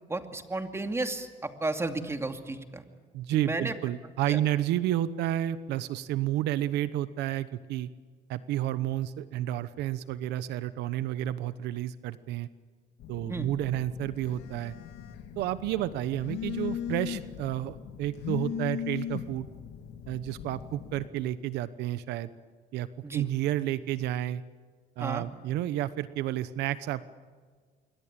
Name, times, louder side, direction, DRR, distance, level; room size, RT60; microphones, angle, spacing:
voice 1, 0.1-2.8 3.3-3.7 4.3-4.4 13.3-13.5 23.0-23.2 25.0-25.3, right 2 dB, 15° right, 6 dB, 2.5 m, -33 dB
voice 2, 3.1-7.9 8.3-12.5 13.1-14.7 15.4-19.5 20.1-22.3 22.7-24.4 25.0-27.1, right 13 dB, 85° right, 14 dB, 1.0 m, -31 dB
Telephone, 13.0-21.1, left 10 dB, 85° left, 2.7 m, -38 dB
27.0 x 23.5 x 8.8 m, 1.5 s
cardioid pair, 110°, 17 cm